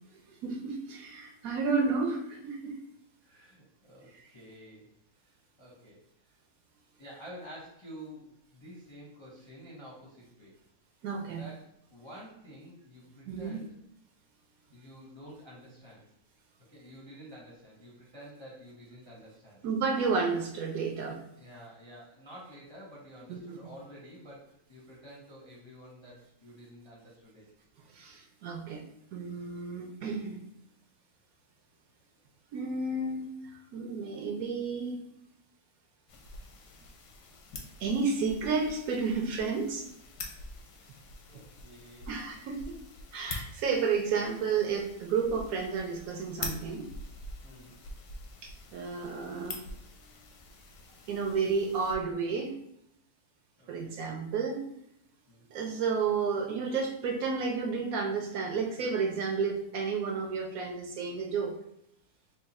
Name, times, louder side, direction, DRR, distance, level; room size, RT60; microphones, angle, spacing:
voice 1, 0.4-2.8 4.1-4.2 11.0-11.4 13.3-13.6 19.6-21.2 23.3-23.6 27.9-28.8 29.1-30.4 32.5-33.3 33.7-35.0 37.8-39.9 41.3-41.4 42.1-42.8 43.1-46.9 48.4-49.6 51.1-52.5 53.7-54.6 55.5-61.5, right 5 dB, 70° right, 2 dB, 1.0 m, -31 dB
voice 2, 3.2-4.9 5.2-6.1 7.0-10.5 11.2-13.8 14.7-16.1 16.7-19.6 21.4-27.5 40.7-41.0 41.2-42.1 47.4-47.8 53.6-54.1 55.3-55.5, equal, 30° left, -5 dB, 0.5 m, -50 dB
sound 1, 36.1-52.0, left 3 dB, 90° left, 1.3 m, -45 dB
3.5 x 2.3 x 4.0 m, 0.74 s
omnidirectional pair, 1.8 m